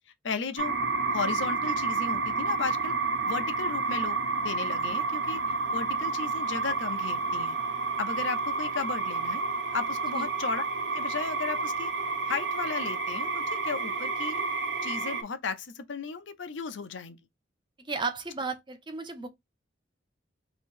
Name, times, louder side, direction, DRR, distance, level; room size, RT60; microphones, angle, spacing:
voice 1, 0.2-0.7 1.1-3.0 3.2-5.4 5.7-7.6 8.0-9.4 9.7-10.7 10.9-11.9 12.3-14.4 14.8-17.2, left 5 dB, 80° left, 0.6 m, -35 dB
sound 1, 0.6-15.2, right 4 dB, 60° right, 0.7 m, -30 dB
voice 2, 17.8-19.3, right 4 dB, 25° right, 0.6 m, -34 dB
2.9 x 2.8 x 4.4 m
head